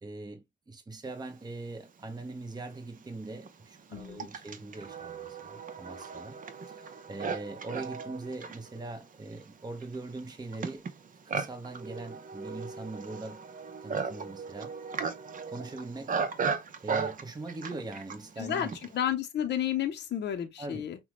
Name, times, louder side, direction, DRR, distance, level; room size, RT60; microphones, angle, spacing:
voice 1, 0.0-6.4 6.7-10.9 11.2-13.4 13.8-14.7 15.5-16.2 16.8-18.8 20.6-20.9, right 2 dB, 20° right, 1.1 m, -41 dB
Livestock farm animals working animals, 2.2-2.3 3.0-19.0, right 5 dB, 40° right, 0.7 m, -37 dB
voice 2, 3.9-4.3 18.4-18.7 18.9-21.0, left 10 dB, 60° left, 0.7 m, -31 dB
5.7 x 2.2 x 3.1 m
cardioid pair, 90°, 20 cm